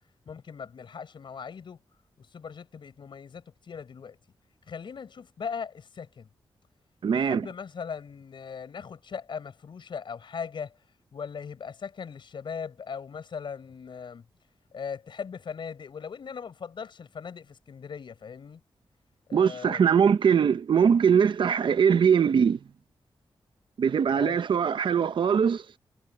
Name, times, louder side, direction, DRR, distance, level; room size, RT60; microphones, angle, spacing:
voice 1, 0.3-1.8 2.2-4.2 4.7-6.3 7.1-10.7 11.1-14.2 14.7-18.6 19.3-19.9 20.4-20.6 24.2-24.4, left 6 dB, 65° left, 4.4 m, -39 dB
voice 2, 7.0-7.5 19.3-22.6 23.8-25.6, right 7 dB, 65° right, 0.8 m, -22 dB
wide cardioid pair, 125°, 9 cm